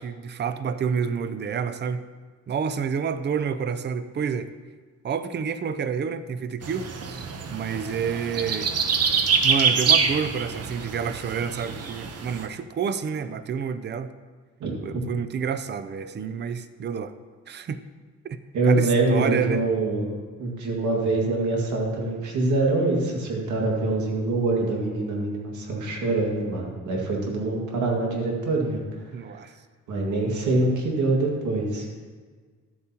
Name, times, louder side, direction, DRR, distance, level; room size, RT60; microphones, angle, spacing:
voice 1, 0.0-2.1 2.5-4.5 5.0-7.2 7.5-8.7 9.4-14.1 14.8-17.1 17.5-17.8 18.2-18.4 18.7-19.7 29.1-29.5, right 6 dB, 35° right, 12 dB, 0.5 m, -29 dB
sound 1, 6.6-12.5, right 5 dB, 55° right, 0.9 m, -25 dB
voice 2, 18.5-28.8 29.9-31.9, right 2 dB, 75° right, 0 dB, 2.1 m, -24 dB
12.5 x 8.4 x 2.9 m, 1.5 s
cardioid pair, 90°, 30 cm